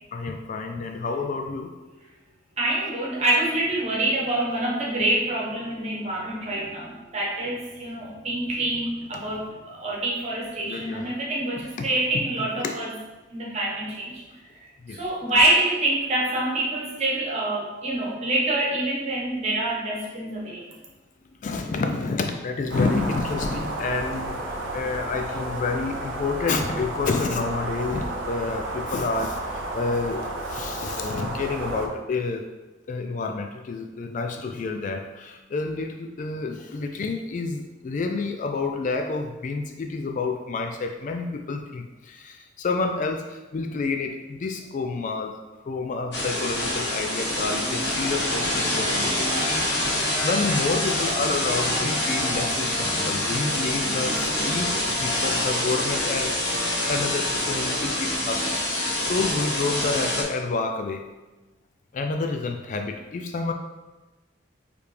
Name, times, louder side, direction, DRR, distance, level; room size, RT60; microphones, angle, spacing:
voice 1, 0.1-1.7 10.6-11.1 11.8-11.9 12.4-12.7 14.8-15.0 15.2-15.3 20.4-20.5 21.3-32.5 32.9-45.3 45.7-49.7 50.2-56.3 56.9-58.5 59.0-61.0 61.9-63.5, left 3 dB, 40° left, 4 dB, 0.3 m, -29 dB
voice 2, 2.6-12.9 13.3-14.2 14.9-20.6, right 1 dB, 35° right, -4 dB, 1.1 m, -26 dB
sound 1, 22.7-31.9, right 1 dB, 85° right, 0.7 m, -32 dB
sound 2, 46.1-60.2, left 1 dB, 60° left, 1.4 m, -26 dB
4.8 x 3.3 x 3.3 m, 1.2 s
head